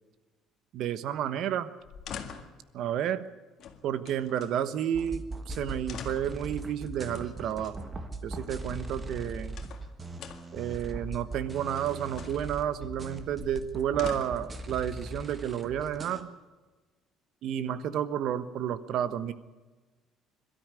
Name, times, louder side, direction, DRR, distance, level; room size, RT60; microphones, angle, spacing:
voice 1, 0.7-1.7 2.7-3.2 3.8-7.8 8.2-9.6 10.5-16.3 17.4-19.3, right 10 dB, 55° right, 14 dB, 1.2 m, -31 dB
sound 1, 1.8-2.6 3.6-4.5 5.2-5.3 5.5-6.4 7.1-7.8 8.9-9.9 10.2-10.6 11.5-12.4 13.2-14.5 15.4-16.1, left 7 dB, 45° left, 1.9 m, -44 dB
sound 2, 4.9-16.2, right 2 dB, 15° right, 1.5 m, -40 dB
22.0 x 13.0 x 9.8 m, 1.2 s
cardioid pair, 165°, 0 cm